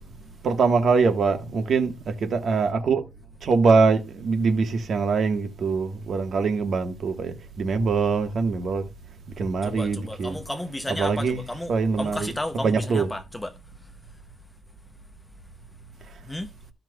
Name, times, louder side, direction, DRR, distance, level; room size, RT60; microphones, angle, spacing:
voice 1, 0.4-3.0 3.4-8.8 9.4-10.4 10.9-11.4 11.7-12.3 12.6-13.1, right 4 dB, 45° right, 1.4 m, -23 dB
voice 2, 9.6-13.5 16.3-16.5, left 1 dB, 10° left, 0.7 m, -33 dB
14.5 x 5.9 x 2.3 m
wide cardioid pair, 170°, 0 cm